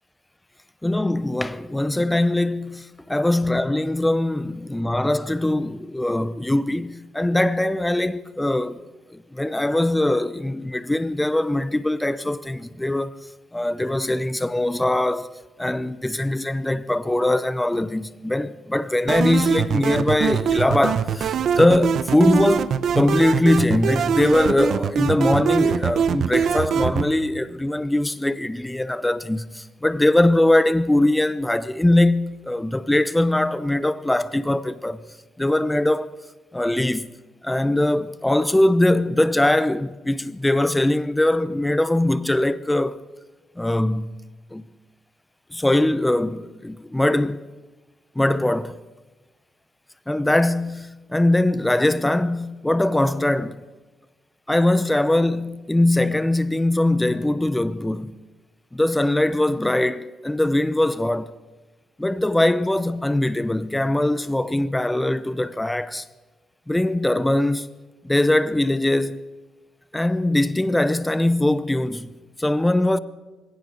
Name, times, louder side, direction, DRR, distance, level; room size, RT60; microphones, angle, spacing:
voice 1, 0.8-8.8 9.1-13.1 13.5-15.3 15.6-35.0 35.4-36.1 36.5-37.1 37.4-43.0 43.6-44.1 44.5-44.6 45.5-47.4 48.2-48.8 50.1-53.6 54.5-58.2 58.7-61.3 62.0-66.0 66.7-67.7 68.0-69.2 69.9-73.0, left 1 dB, 10° left, 0.7 m, -21 dB
sound 1, 19.1-27.1, right 7 dB, 65° right, 1.1 m, -23 dB
23.0 x 17.0 x 6.7 m
cardioid pair, 90°, 0 cm